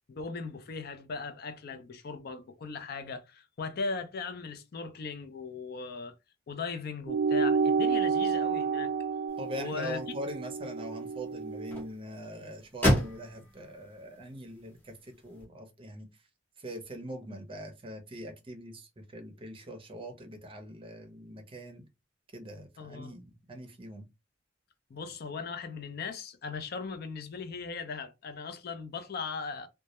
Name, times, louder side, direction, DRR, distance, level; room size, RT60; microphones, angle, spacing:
voice 1, 0.1-6.1 6.5-8.9 9.6-10.2 22.8-23.1 24.9-29.7, left 4 dB, 55° left, 0.4 m, -38 dB
sound 1, 7.1-11.9, right 5 dB, 70° right, 0.3 m, -30 dB
sound 2, 9.3-15.4, equal, 10° left, 0.8 m, -35 dB
voice 2, 9.4-16.1 16.6-21.8 22.3-24.1, equal, 30° right, 0.6 m, -42 dB
2.2 x 2.0 x 2.8 m
head